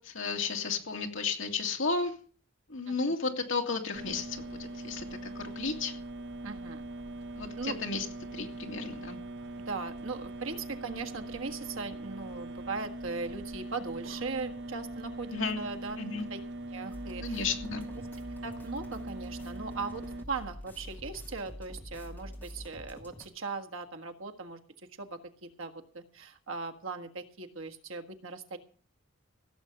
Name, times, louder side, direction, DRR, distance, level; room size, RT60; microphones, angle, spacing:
voice 1, 0.0-2.1 2.7-5.1 5.4-5.9 7.3-8.1 8.3-9.2 15.3-15.6 16.0-16.3 17.2-17.9, left 4 dB, 65° left, 3 dB, 2.3 m, -33 dB
sound 1, 3.9-20.2, right 1 dB, 55° right, 0.9 m, -41 dB
voice 2, 6.4-6.8 7.6-7.8 9.6-16.0 16.3-16.4 16.7-17.5 18.0-18.1 18.4-24.6 25.0-28.6, right 4 dB, 75° right, 5 dB, 1.6 m, -39 dB
sound 2, 16.9-23.3, equal, 10° left, 2.5 m, -46 dB
16.5 x 7.6 x 6.8 m, 0.42 s
head